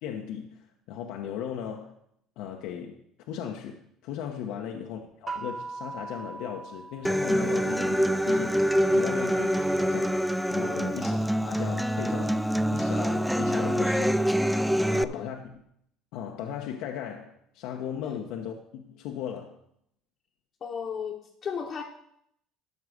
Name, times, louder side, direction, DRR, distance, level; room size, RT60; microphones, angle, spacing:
voice 1, 0.0-1.9 2.4-8.6 8.9-11.2 11.4-12.4 12.7-14.2 14.9-15.6 16.1-19.6, left 8 dB, 70° left, 2 dB, 1.0 m, -37 dB
voice 2, 4.5-5.0 10.7-10.9 14.8-15.3 18.0-18.2 20.6-21.8, left 7 dB, 35° left, -2 dB, 1.2 m, -37 dB
sound 1, 5.3-8.0, right 3 dB, 20° right, 1.1 m, -40 dB
Human voice / Acoustic guitar, 7.0-15.0, equal, ahead, 0.3 m, -25 dB
12.5 x 4.8 x 6.5 m, 0.72 s
cardioid pair, 125°, 0 cm